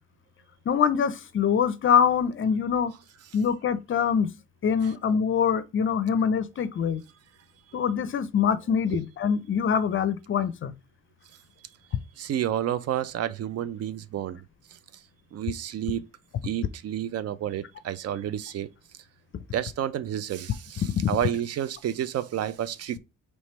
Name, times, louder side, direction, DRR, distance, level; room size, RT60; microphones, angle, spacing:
voice 1, 0.7-2.9 3.3-4.3 4.6-7.0 7.7-10.7 21.0-21.1, left 7 dB, 45° left, 0.5 m, -24 dB
voice 2, 12.2-14.4 15.3-16.0 16.4-18.7 19.5-20.8 21.1-23.0, right 10 dB, 55° right, 0.4 m, -30 dB
3.2 x 3.1 x 4.2 m
cardioid pair, 90°, 30 cm